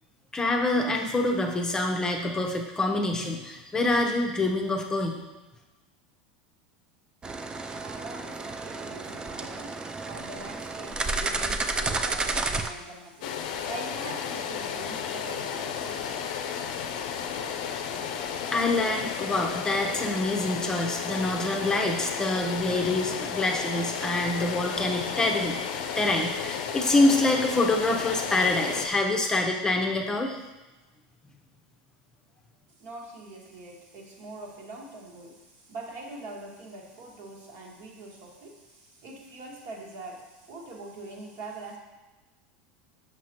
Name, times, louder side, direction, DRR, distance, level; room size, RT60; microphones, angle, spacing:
voice 1, 0.3-5.2 18.5-25.6 26.0-30.4, left 2 dB, 15° left, 1 dB, 0.7 m, -26 dB
sound 1, 7.2-12.7, right 3 dB, 20° right, 0.4 m, -31 dB
voice 2, 7.8-17.3 32.8-41.8, right 2 dB, 55° right, -1 dB, 1.5 m, -43 dB
sound 2, 13.2-28.9, left 7 dB, 70° left, 0.5 m, -33 dB
6.1 x 5.8 x 2.9 m, 1.1 s
hypercardioid pair, 100°, 5 cm